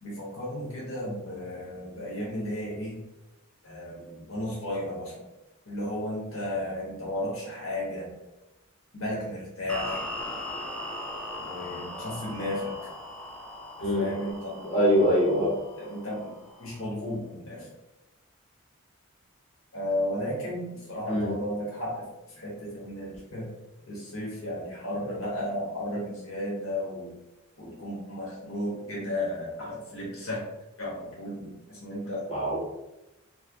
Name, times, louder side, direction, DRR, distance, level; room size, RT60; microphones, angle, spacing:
voice 1, 0.0-3.0 3.6-5.3 5.6-8.1 8.9-10.0 11.4-12.9 13.8-15.5 15.8-16.3 16.6-17.7 19.7-23.5 23.9-27.2 27.6-30.4 30.8-32.2, left 1 dB, 80° left, -5 dB, 1.3 m, -34 dB
sound 1, 9.7-16.9, left 1 dB, 5° left, 0.4 m, -39 dB
voice 2, 14.6-15.5 21.1-21.3 32.3-32.6, equal, 30° left, -8 dB, 1.1 m, -23 dB
3.4 x 2.1 x 3.4 m, 0.97 s
head